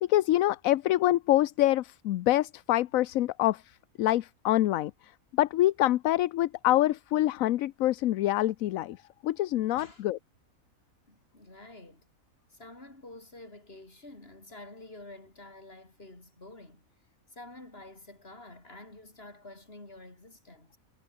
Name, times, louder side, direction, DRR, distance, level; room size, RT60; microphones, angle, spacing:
voice 1, 0.0-3.6 4.0-4.9 5.3-9.0 9.2-10.2, left 14 dB, 80° left, 1.0 m, -25 dB
voice 2, 9.7-10.0 11.1-12.1 12.5-16.9 17.3-20.8, left 2 dB, 45° left, 5.1 m, -49 dB
omnidirectional pair, 1.4 m